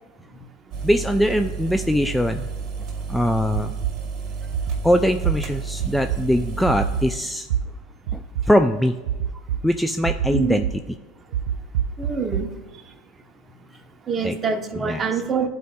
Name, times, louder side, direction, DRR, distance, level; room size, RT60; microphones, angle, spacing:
sound 1, 0.7-7.2, right 5 dB, 45° right, 2.2 m, -31 dB
voice 1, 0.8-2.5 3.1-3.7 4.8-7.5 8.1-9.0 9.6-10.7 14.2-14.4 14.8-15.0, equal, 5° left, 7 dB, 0.3 m, -21 dB
sound 2, 3.5-3.9 4.5-4.8 5.2-5.3 5.8-6.2 6.7-7.0 7.5-7.6 8.1-8.5 9.1-9.6 10.1-10.7 11.3-12.4, right 10 dB, 75° right, 0.4 m, -24 dB
voice 2, 10.3-10.6 12.0-12.5 14.1-15.5, right 5 dB, 25° right, 6 dB, 0.9 m, -25 dB
12.5 x 4.5 x 2.3 m, 1.2 s
hypercardioid pair, 85°, 0 cm